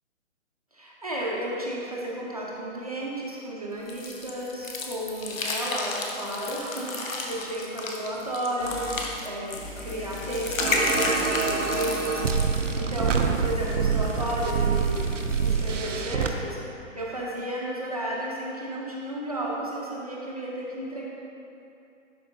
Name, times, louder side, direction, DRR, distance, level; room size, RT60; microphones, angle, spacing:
voice 1, 0.7-15.1 15.4-21.1, right 1 dB, 30° right, -4 dB, 0.7 m, -33 dB
sound 1, 3.9-12.6, left 3 dB, 80° left, 1.1 m, -32 dB
sound 2, 8.6-9.1 9.5-16.0, left 1 dB, 50° left, 1.5 m, -39 dB
sound 3, 10.6-16.3, right 5 dB, 70° right, 0.6 m, -26 dB
11.0 x 4.6 x 2.8 m, 2.8 s
hypercardioid pair, 180°, 40 cm